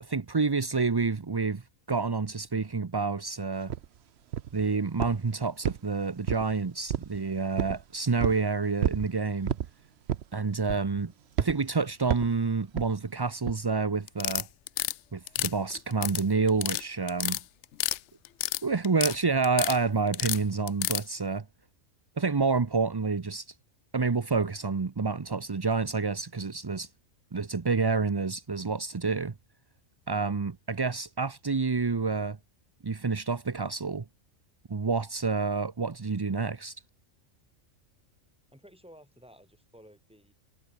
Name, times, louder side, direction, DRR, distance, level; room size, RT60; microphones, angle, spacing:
voice 1, 0.0-1.6 1.9-3.7 4.5-9.5 10.3-11.1 11.4-14.5 15.1-17.4 18.6-21.4 22.2-23.5 23.9-26.9 27.3-29.3 30.1-32.4 32.8-34.0 34.7-36.8, right 4 dB, 30° right, 0.4 m, -28 dB
sound 1, 3.7-3.8 4.3-4.6 5.0-5.3 5.6-6.5 6.9-7.2 7.6-7.8 8.2-8.4 8.8-9.1 9.5-9.7 10.1-10.4 10.7-11.0 11.4-11.6 12.1-12.4 12.8-12.9 13.5-13.6, right 10 dB, 60° right, 0.9 m, -30 dB
sound 2, 14.1-14.9 15.3-16.2 16.5-16.8 17.1-18.0 18.2-19.2 19.4-19.8 20.1-21.0, left 13 dB, 65° left, 0.8 m, -29 dB
voice 2, 38.5-40.3, equal, 5° right, 5.6 m, -54 dB
omnidirectional pair, 1.4 m